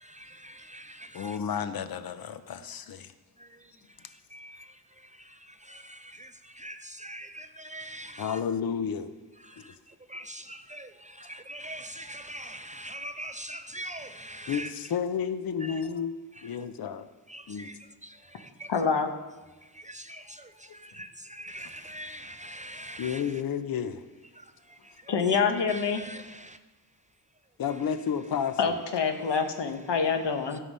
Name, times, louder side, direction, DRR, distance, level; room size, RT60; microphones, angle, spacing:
voice 1, 0.0-1.4 4.3-4.8 5.7-8.4 9.5-9.6 10.1-15.0 15.6-15.8 16.4-16.5 17.3-17.8 18.0-18.7 19.8-23.4 25.4-26.6 29.1-29.5 30.5-30.6, right 1 dB, 20° right, 0.3 m, -43 dB
voice 2, 1.1-3.1 8.2-9.1 14.5-16.1 16.4-17.1 17.5-17.7 23.0-24.0 27.6-28.7, left 7 dB, 60° left, 0.8 m, -31 dB
voice 3, 18.7-19.1 25.1-26.0 28.6-30.6, left 5 dB, 85° left, 1.3 m, -26 dB
16.0 x 5.7 x 5.5 m
wide cardioid pair, 130°, 41 cm